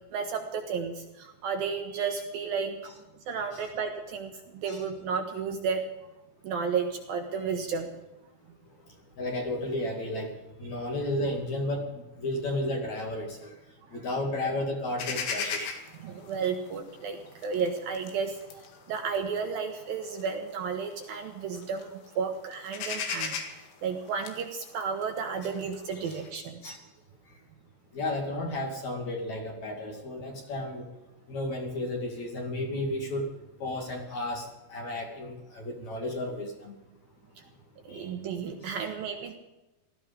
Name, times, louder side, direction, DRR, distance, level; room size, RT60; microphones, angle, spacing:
voice 1, 0.1-2.8 3.3-5.9 6.4-7.9 13.9-14.0 16.0-23.3 23.8-26.6 37.4-37.5 37.8-39.3, right 6 dB, 65° right, 4 dB, 2.5 m, -33 dB
voice 2, 9.2-13.5 13.9-15.7 26.6-26.8 27.9-30.9 31.3-33.3 33.6-36.8 37.9-38.1, left 1 dB, 45° left, 1 dB, 3.0 m, -33 dB
sound 1, 15.0-21.2 21.5-22.1 22.4-26.3, left 5 dB, 80° left, 4.2 m, -37 dB
17.5 x 13.5 x 5.2 m, 1.0 s
omnidirectional pair, 5.1 m